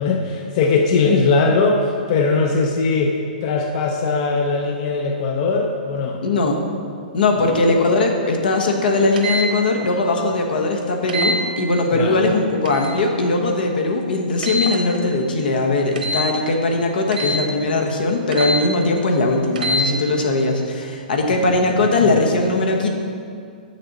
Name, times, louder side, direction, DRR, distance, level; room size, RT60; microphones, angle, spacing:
voice 1, 0.0-3.1 3.4-6.2 7.4-7.5 11.9-12.3 21.4-22.3, left 4 dB, 45° left, 2 dB, 0.6 m, -20 dB
voice 2, 6.2-6.6 7.1-22.9, left 2 dB, 80° left, 2 dB, 1.1 m, -19 dB
sound 1, 9.2-9.5 11.1-11.4 12.6-13.0 14.4-14.8 16.0-16.3 17.1-17.4 18.3-18.6 19.5-19.8, equal, 75° right, 1.2 m, -23 dB
7.7 x 6.6 x 4.1 m, 2.3 s
hypercardioid pair, 140°, 5 cm